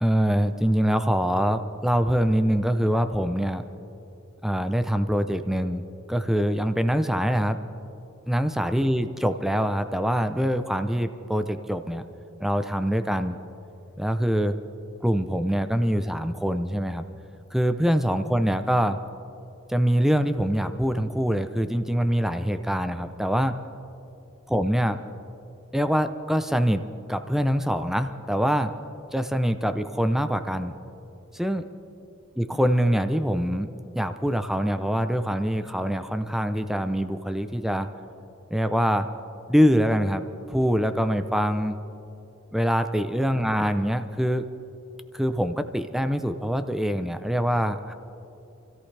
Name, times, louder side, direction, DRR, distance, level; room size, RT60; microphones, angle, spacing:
voice 1, 0.0-3.6 4.4-5.8 6.1-7.6 8.3-12.0 12.4-13.4 14.0-14.5 15.0-17.1 17.5-19.0 19.7-23.5 24.5-25.0 25.7-26.8 27.1-28.7 29.1-30.7 31.3-31.6 32.4-37.9 38.5-39.1 39.5-41.8 42.5-44.4 45.1-47.9, equal, ahead, 9 dB, 0.6 m, -24 dB
28.0 x 14.0 x 3.3 m, 2.7 s
head